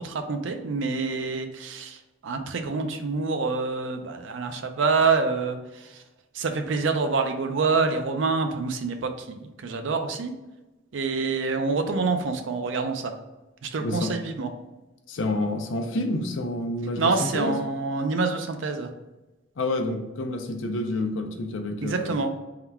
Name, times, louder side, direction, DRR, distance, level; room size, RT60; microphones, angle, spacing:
voice 1, 0.0-6.0 6.3-10.3 10.9-13.1 13.6-14.5 17.0-18.9 21.8-22.3, right 4 dB, 80° right, 6 dB, 0.5 m, -26 dB
voice 2, 13.8-14.2 15.1-17.6 19.6-22.2, left 2 dB, 90° left, 5 dB, 0.5 m, -29 dB
3.7 x 2.3 x 4.4 m, 1.1 s
head